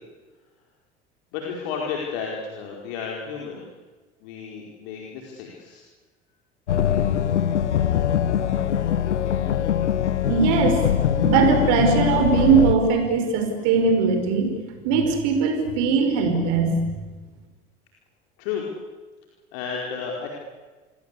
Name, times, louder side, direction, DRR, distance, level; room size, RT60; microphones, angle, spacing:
voice 1, 1.3-3.6 4.2-5.8 18.4-18.7 19.5-20.3, left 6 dB, 60° left, -1 dB, 4.9 m, -32 dB
sound 1, 6.7-12.8, left 9 dB, 80° left, 1.3 m, -22 dB
voice 2, 10.3-14.5 14.8-16.8, right 5 dB, 60° right, 6 dB, 5.3 m, -20 dB
30.0 x 23.0 x 8.5 m, 1.3 s
figure-of-eight pair, 75°, 35 cm